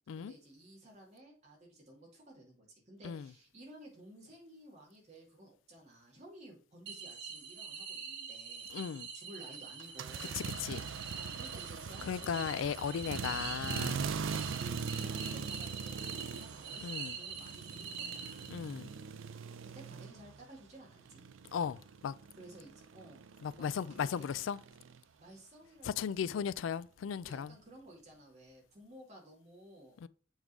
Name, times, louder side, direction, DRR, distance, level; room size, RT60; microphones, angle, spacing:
voice 1, 0.2-8.7 9.1-10.4 11.1-12.7 14.0-18.5 19.6-21.2 22.4-23.2 23.6-24.3 25.2-26.2 27.2-30.0, right 1 dB, 35° right, 2.4 m, -55 dB
sound 1, 6.9-18.8, right 6 dB, 60° right, 1.4 m, -44 dB
voice 2, 8.7-9.1 10.3-10.9 12.0-14.1 16.8-17.2 18.5-18.9 21.5-22.2 23.4-24.6 25.8-27.6 30.0-30.1, left 7 dB, 85° left, 0.3 m, -36 dB
sound 2, 9.8-20.6 20.9-25.0, right 6 dB, 90° right, 0.5 m, -42 dB
7.2 x 3.7 x 4.6 m
head